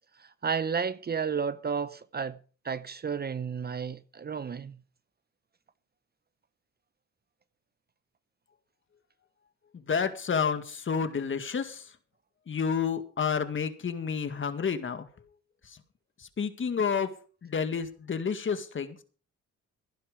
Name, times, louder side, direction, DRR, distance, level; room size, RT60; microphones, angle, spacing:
voice 1, 0.2-2.4 2.6-4.8, right 6 dB, 30° right, 0.8 m, -32 dB
voice 2, 9.7-11.9 12.5-15.1 15.6-15.8 16.2-17.1 17.4-19.0, left 6 dB, 40° left, 2.0 m, -30 dB
16.0 x 10.5 x 5.1 m
cardioid pair, 90°, 30 cm